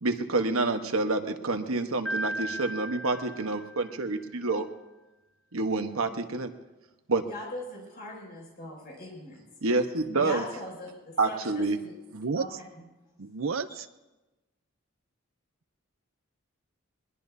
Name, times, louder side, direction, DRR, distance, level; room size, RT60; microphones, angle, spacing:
voice 1, 0.0-4.6 5.5-6.5 7.1-7.2 9.6-10.4 11.2-11.8, right 3 dB, 90° right, 6 dB, 1.2 m, -28 dB
Piano, 2.1-4.1, right 1 dB, 5° left, 1.3 m, -36 dB
voice 2, 7.2-9.4 10.1-10.9 11.3-11.9 12.4-12.5 12.7-12.8, left 1 dB, 45° left, -3 dB, 7.0 m, -40 dB
voice 3, 12.1-12.6 13.2-13.9, right 4 dB, 70° right, 12 dB, 0.7 m, -32 dB
21.5 x 21.0 x 2.7 m, 1.1 s
head